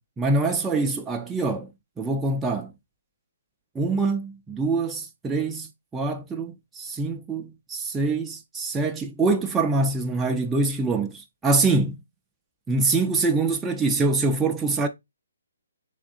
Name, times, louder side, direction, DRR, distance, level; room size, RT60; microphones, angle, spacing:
voice 1, 0.2-1.7 2.0-2.7 3.7-12.0 12.7-14.9, right 3 dB, 10° right, 0.3 m, -24 dB
3.5 x 3.4 x 2.3 m
hypercardioid pair, 150°, 0 cm